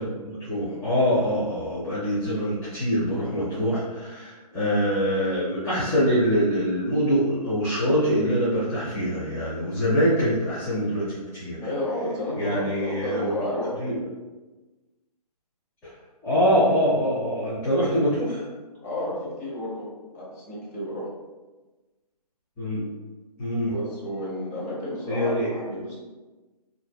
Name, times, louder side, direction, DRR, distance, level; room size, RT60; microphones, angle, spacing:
voice 1, 0.0-11.6 12.4-13.3 13.8-13.9 15.8-15.9 16.2-18.5 22.6-22.8 23.4-23.7 25.1-25.5, equal, 10° left, -13 dB, 0.6 m, -24 dB
voice 2, 11.6-13.8 18.8-19.9 20.1-21.1 23.6-26.0, left 1 dB, 25° left, -6 dB, 1.0 m, -31 dB
3.4 x 2.6 x 2.2 m, 1.2 s
figure-of-eight pair, 135°, 21 cm